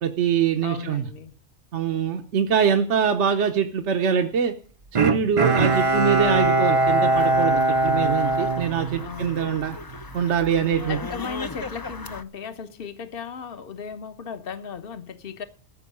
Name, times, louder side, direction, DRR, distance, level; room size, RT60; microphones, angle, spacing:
voice 1, 0.0-1.0 1.7-4.5 4.9-9.8 10.1-11.0, right 7 dB, 70° right, 1.2 m, -23 dB
voice 2, 0.6-1.3 8.9-9.7 10.9-15.4, left 6 dB, 50° left, 1.2 m, -36 dB
Bowed string instrument, 5.0-9.5 9.9-10.0, right 2 dB, 35° right, 0.6 m, -21 dB
sound 1, 5.5-12.2, left 3 dB, 30° left, 0.4 m, -38 dB
14.0 x 6.2 x 8.6 m
omnidirectional pair, 1.2 m